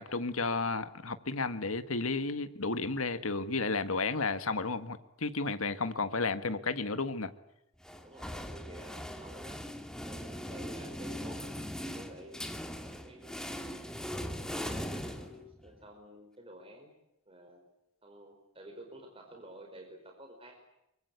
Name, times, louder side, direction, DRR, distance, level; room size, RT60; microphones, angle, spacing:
voice 1, 0.0-7.3, left 3 dB, 90° left, 10 dB, 1.7 m, -32 dB
sound 1, 7.8-15.8, equal, 5° left, 2.3 m, -40 dB
voice 2, 8.0-9.6 10.0-12.4 12.8-13.3 14.1-16.9 17.3-17.6 18.0-20.5, right 1 dB, 25° right, 3 dB, 4.9 m, -51 dB
24.5 x 24.5 x 8.1 m, 0.84 s
head